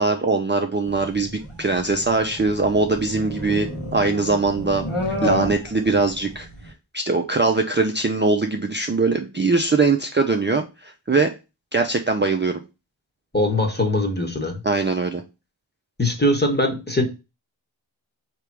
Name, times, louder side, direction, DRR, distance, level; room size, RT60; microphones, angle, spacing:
voice 1, 0.0-11.3 11.7-12.6 14.6-15.2, right 3 dB, 25° right, 4 dB, 0.4 m, -22 dB
sound 1, 0.8-6.7, left 1 dB, 85° left, 1.3 m, -31 dB
voice 2, 3.5-3.9 13.3-14.6 16.0-17.0, left 1 dB, 20° left, 3 dB, 1.3 m, -22 dB
3.4 x 2.9 x 4.7 m, 0.27 s
wide cardioid pair, 45°, 47 cm